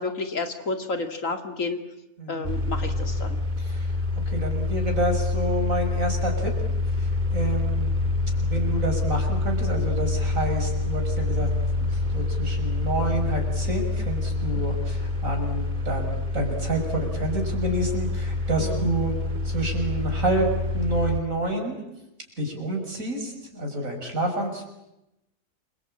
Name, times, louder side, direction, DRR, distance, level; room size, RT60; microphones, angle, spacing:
voice 1, 0.0-1.8 2.3-3.4 18.6-18.9, left 3 dB, 60° left, 7 dB, 2.8 m, -30 dB
voice 2, 2.2-2.5 3.6-3.9 4.3-6.5 7.0-7.9 8.4-11.5 11.9-19.2 19.4-20.5 20.7-21.8 22.4-24.6, right 1 dB, 60° right, 2 dB, 6.3 m, -28 dB
sound 1, 2.4-21.2, left 2 dB, 30° right, 2.6 m, -26 dB
29.0 x 23.5 x 8.8 m, 0.90 s
omnidirectional pair, 1.5 m